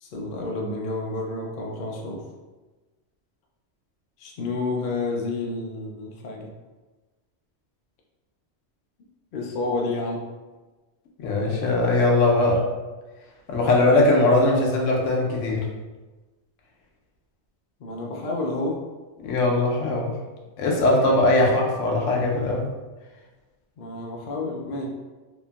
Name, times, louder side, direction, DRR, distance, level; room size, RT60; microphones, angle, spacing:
voice 1, 0.0-2.2 4.2-6.5 9.3-10.3 17.8-18.8 21.4-21.5 23.8-24.9, left 2 dB, 60° left, -1 dB, 0.6 m, -30 dB
voice 2, 11.2-12.6 13.5-15.6 19.2-20.1 20.6-22.7, left 2 dB, 80° left, -1 dB, 1.0 m, -20 dB
2.9 x 2.5 x 2.3 m, 1.2 s
omnidirectional pair, 1.3 m